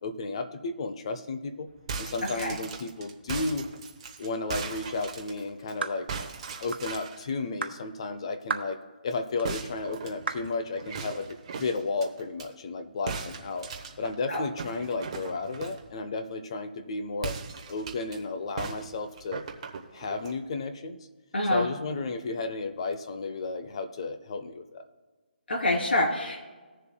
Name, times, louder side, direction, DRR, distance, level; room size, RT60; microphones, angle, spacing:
voice 1, 0.0-1.7 2.0-3.7 4.2-6.1 6.6-8.8 9.0-11.3 11.6-13.7 14.0-17.3 17.7-19.4 19.9-21.0 21.5-24.8, left 3 dB, 30° left, 9 dB, 0.7 m, -33 dB
sound 1, 1.7-5.7 6.1-7.3 9.4-12.5 13.1-15.9 17.2-18.2 18.6-20.4, right 5 dB, 30° right, 1.0 m, -38 dB
sound 2, 5.8-6.0 6.7-6.9 7.6-7.8 8.5-8.7 9.4-9.5 10.3-10.5, right 4 dB, 80° right, 1.1 m, -33 dB
voice 2, 21.3-21.7 25.5-26.4, left 1 dB, 70° left, -2 dB, 3.4 m, -26 dB
19.5 x 6.9 x 2.2 m, 1.4 s
hypercardioid pair, 170°, 6 cm